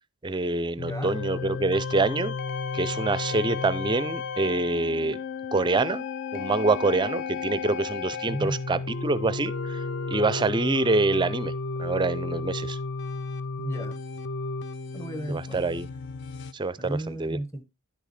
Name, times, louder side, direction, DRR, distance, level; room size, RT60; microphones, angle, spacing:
voice 1, 0.2-2.4 2.7-5.2 5.5-6.0 6.3-9.8 10.1-11.5 11.8-12.8 15.3-15.9 16.5-17.4, right 3 dB, 20° right, 0.4 m, -26 dB
sound 1, 0.8-16.5, left 4 dB, 55° left, 0.4 m, -33 dB
voice 2, 8.2-8.6 13.6-14.0 14.9-15.6 16.8-17.6, right 1 dB, 15° left, 1.2 m, -34 dB
10.5 x 6.5 x 3.2 m
head